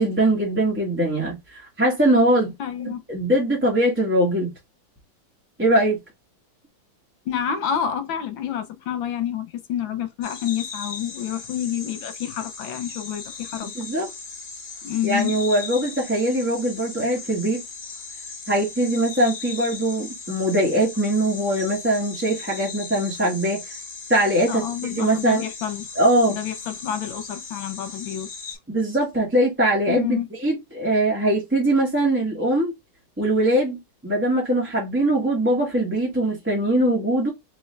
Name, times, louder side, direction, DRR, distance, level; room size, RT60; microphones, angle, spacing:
voice 1, 0.0-2.5 3.1-4.5 5.6-6.0 13.7-14.1 15.0-17.6 18.5-23.6 24.1-25.4 25.9-26.4 28.7-32.7 33.2-37.3, right 1 dB, 5° right, 1.1 m, -21 dB
voice 2, 2.6-3.0 7.2-13.7 14.8-15.3 24.5-25.9 26.3-28.3 29.9-30.3, left 9 dB, 85° left, 1.6 m, -28 dB
sound 1, 10.2-28.6, left 5 dB, 50° left, 1.6 m, -38 dB
3.7 x 3.1 x 3.2 m
omnidirectional pair, 2.1 m